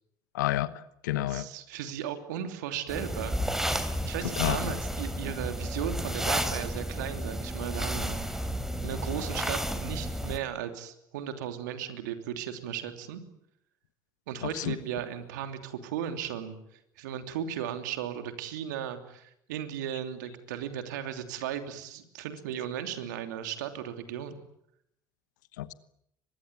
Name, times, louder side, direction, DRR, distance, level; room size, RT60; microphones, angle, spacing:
voice 1, 0.3-1.5 4.4-4.8 14.4-14.7 25.6-25.7, left 14 dB, 75° left, 16 dB, 1.1 m, -30 dB
voice 2, 1.3-3.4 4.0-8.3 8.8-13.2 14.3-16.5 17.0-24.4, right 9 dB, 75° right, 8 dB, 3.0 m, -36 dB
sound 1, 2.9-10.4, equal, 5° right, 3.5 m, -32 dB
24.0 x 22.0 x 9.4 m, 0.76 s
hypercardioid pair, 65°, 10 cm